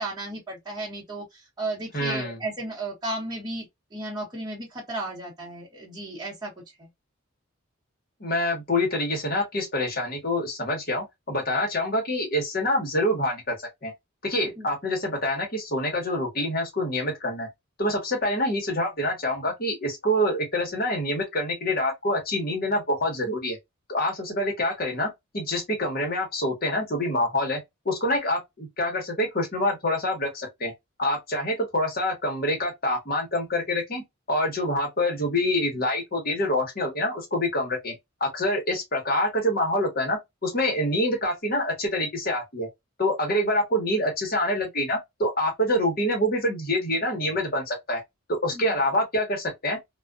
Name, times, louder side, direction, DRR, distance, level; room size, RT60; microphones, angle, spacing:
voice 1, 0.0-3.6 3.9-6.5 6.8-6.9 14.6-14.7 48.5-48.8, right 2 dB, 20° right, 1.0 m, -34 dB
voice 2, 1.9-2.4 8.2-13.9 14.2-17.5 17.8-23.6 23.9-27.6 27.8-30.7 31.0-34.0 34.3-37.9 38.2-42.7 43.0-48.0 48.4-49.8, left 1 dB, 45° left, 1.1 m, -26 dB
2.4 x 2.4 x 2.3 m
head